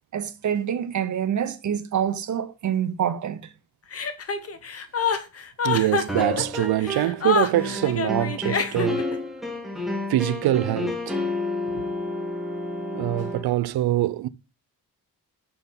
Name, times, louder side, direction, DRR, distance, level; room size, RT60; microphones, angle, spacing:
voice 1, 0.1-3.5, right 9 dB, 55° right, 0.9 m, -26 dB
Chuckle chortle, 3.9-9.1, left 6 dB, 40° left, 0.9 m, -27 dB
voice 2, 5.6-9.1 10.1-11.2 11.6-11.9 12.9-14.3, right 14 dB, 90° right, 0.6 m, -24 dB
sound 1, 6.1-7.2 7.5-13.4, left 2 dB, ahead, 1.5 m, -30 dB
6.7 x 4.6 x 5.7 m
wide cardioid pair, 160°, 36 cm